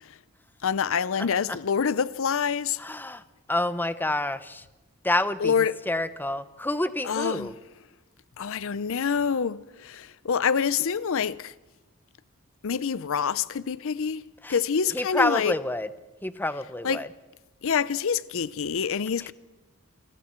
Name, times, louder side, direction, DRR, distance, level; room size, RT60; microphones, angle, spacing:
voice 1, 0.6-2.8 5.4-5.8 7.0-7.5 8.4-11.5 12.6-14.2 14.5-15.5 16.8-17.0 17.6-19.3, left 6 dB, 65° left, 0.6 m, -26 dB
voice 2, 2.8-3.2 3.5-4.6 5.0-5.5 5.9-7.5 14.4-14.6 14.9-15.9 16.2-17.1 19.2-19.3, left 1 dB, 10° left, 0.8 m, -28 dB
28.5 x 21.0 x 4.5 m
head